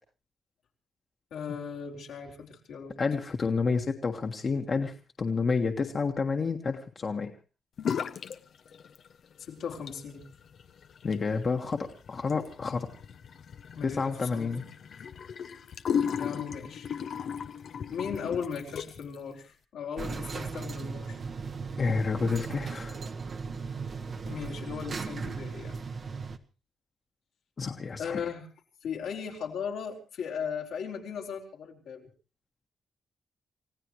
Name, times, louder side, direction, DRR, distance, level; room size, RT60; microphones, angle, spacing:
voice 1, 1.3-3.0 9.4-10.2 13.8-14.6 16.2-16.9 17.9-21.2 24.3-25.8 28.0-28.5 28.8-32.1, left 6 dB, 85° left, 0 dB, 3.9 m, -37 dB
voice 2, 3.0-7.3 11.0-12.9 13.8-14.6 21.8-23.0 27.6-28.2, left 4 dB, 45° left, 3 dB, 1.6 m, -29 dB
sound 1, 7.8-8.4 8.7-9.3 9.7-19.2, left 7 dB, 65° left, 0.8 m, -36 dB
sound 2, 20.0-26.4, right 4 dB, 50° right, 1.2 m, -37 dB
29.0 x 16.0 x 3.2 m, 0.33 s
cardioid pair, 85°, 0 cm